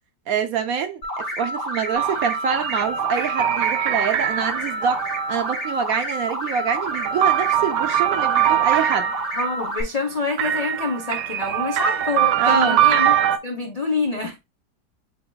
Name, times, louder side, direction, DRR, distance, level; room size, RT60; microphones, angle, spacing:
voice 1, 0.3-9.1 12.4-12.8, right 6 dB, 70° right, 0.9 m, -25 dB
sound 1, 1.0-9.8, equal, 45° left, 1.4 m, -29 dB
sound 2, 1.9-5.7 6.4-9.5 10.4-13.4, right 11 dB, 85° right, 1.2 m, -22 dB
voice 2, 9.3-13.1 13.4-14.4, left 3 dB, 70° left, 0.3 m, -26 dB
7.7 x 2.8 x 2.2 m
omnidirectional pair, 1.8 m